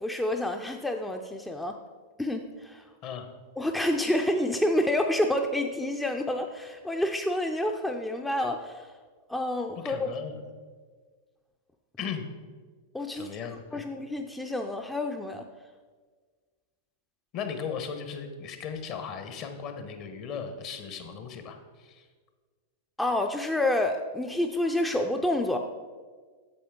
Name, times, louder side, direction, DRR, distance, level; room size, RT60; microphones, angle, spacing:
voice 1, 0.0-1.8 2.2-2.8 3.6-8.9 9.3-10.1 12.9-13.3 13.7-15.5 23.0-25.6, left 1 dB, 5° left, 4 dB, 0.5 m, -28 dB
voice 2, 9.8-10.4 12.0-12.2 13.1-13.8 17.3-22.1, left 6 dB, 45° left, 7 dB, 1.0 m, -37 dB
8.5 x 6.8 x 3.6 m, 1.5 s
hypercardioid pair, 100°, 0 cm